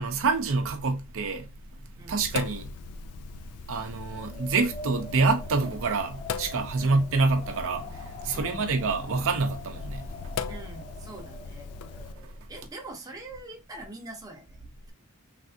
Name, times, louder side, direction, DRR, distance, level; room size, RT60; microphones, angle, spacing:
voice 1, 0.0-1.5 2.1-2.7 3.7-10.0, right 3 dB, 65° right, 0.5 m, -27 dB
Sink (filling or washing), 2.2-12.1, left 5 dB, 75° left, 0.3 m, -40 dB
Wind, 4.0-12.5, left 2 dB, 25° left, 0.6 m, -44 dB
voice 2, 8.3-8.7 10.5-11.7 12.5-14.9, right 2 dB, 15° right, 0.6 m, -43 dB
3.2 x 2.5 x 2.6 m
head